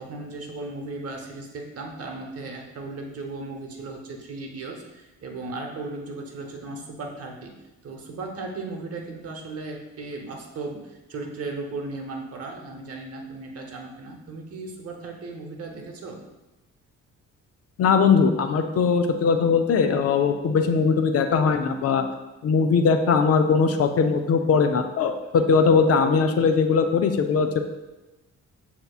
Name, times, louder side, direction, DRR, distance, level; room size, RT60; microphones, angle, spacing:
voice 1, 0.0-7.5 7.8-16.2, right 3 dB, 50° right, 2 dB, 0.9 m, -36 dB
voice 2, 17.8-22.0 22.4-27.6, left 5 dB, 55° left, 7 dB, 0.5 m, -20 dB
7.7 x 2.8 x 2.4 m, 1.0 s
cardioid pair, 90°, 30 cm